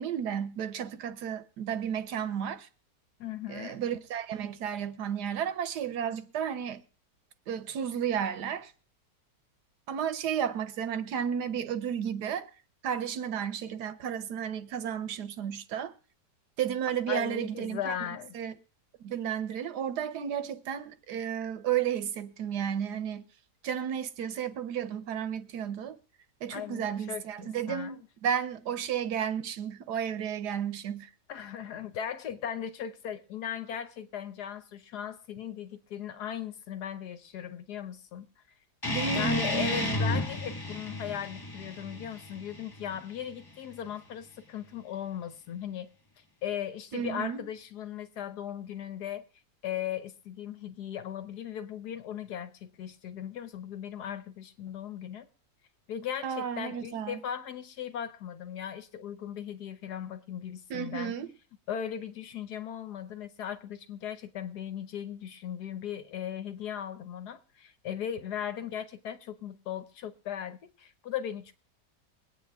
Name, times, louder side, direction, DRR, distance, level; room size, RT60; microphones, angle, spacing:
voice 1, 0.0-2.7 3.5-6.8 7.5-8.7 9.9-12.5 12.8-15.9 16.6-18.0 18.3-18.5 19.0-23.2 23.6-26.0 26.4-31.1 38.9-40.0 46.9-47.4 56.2-57.2 60.7-61.3, right 8 dB, 70° right, 1.3 m, -33 dB
voice 2, 3.2-3.8 17.1-18.4 26.5-28.0 31.3-38.3 39.1-45.9 46.4-49.2 49.6-55.3 55.9-61.1 61.7-71.5, left 9 dB, 65° left, 1.4 m, -38 dB
sound 1, 38.8-43.9, left 2 dB, 30° left, 0.4 m, -33 dB
22.0 x 8.8 x 3.5 m
omnidirectional pair, 1.9 m